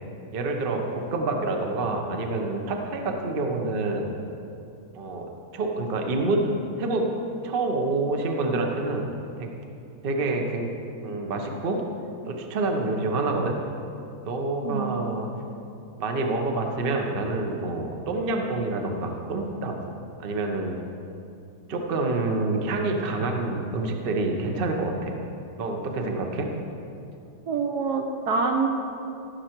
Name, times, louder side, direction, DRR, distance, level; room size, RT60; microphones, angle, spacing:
voice 1, 0.3-4.1 4.9-6.5 6.8-7.1 7.4-9.1 9.4-9.5 10.0-10.7 11.0-11.8 12.2-13.6 14.2-15.3 16.0-19.8 20.2-20.8 21.7-25.2 25.6-26.5, right 2 dB, 50° right, 2 dB, 0.7 m, -27 dB
voice 2, 14.6-15.2 27.5-28.7, right 4 dB, 65° right, 2 dB, 1.1 m, -26 dB
15.0 x 6.5 x 4.5 m, 2.7 s
omnidirectional pair, 2.2 m